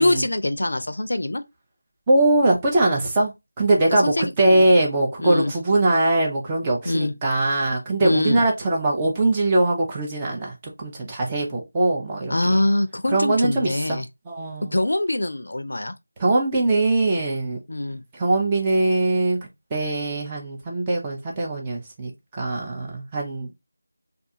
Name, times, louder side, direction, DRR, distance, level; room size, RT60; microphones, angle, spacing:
voice 1, 0.0-1.4 3.9-4.7 5.2-5.5 6.9-7.1 8.0-8.4 12.3-14.0 14.7-15.9 17.7-18.0, left 1 dB, 70° left, 0.4 m, -23 dB
voice 2, 2.1-3.3 3.6-10.5 10.8-12.6 13.1-14.7 16.2-17.6 18.2-19.4 19.7-22.1 22.4-23.5, right 2 dB, 15° right, 0.5 m, -21 dB
2.4 x 2.3 x 2.6 m
figure-of-eight pair, 170°, 0 cm